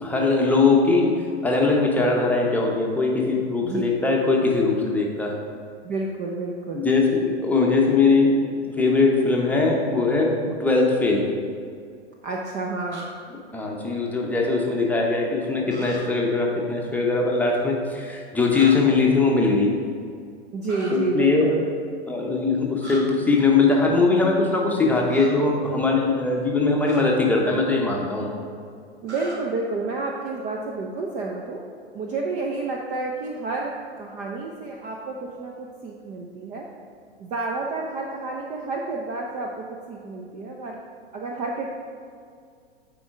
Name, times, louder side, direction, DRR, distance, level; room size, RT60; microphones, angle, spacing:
voice 1, 0.0-5.3 6.7-11.3 13.5-19.7 20.9-21.5 22.1-28.3, left 3 dB, 5° left, -2 dB, 0.9 m, -21 dB
voice 2, 5.8-6.9 12.2-13.1 20.5-21.7 29.0-31.6 31.9-36.7 37.2-40.8 41.1-41.7, right 3 dB, 20° right, 0 dB, 0.5 m, -30 dB
sound 1, 12.9-13.1 15.7-16.0 18.5-18.8 20.6-20.9 22.8-23.0 25.1-25.3 26.8-27.0 29.1-29.4, right 1 dB, 90° right, 1.3 m, -39 dB
9.8 x 4.5 x 3.7 m, 2.2 s
figure-of-eight pair, 100°, 33 cm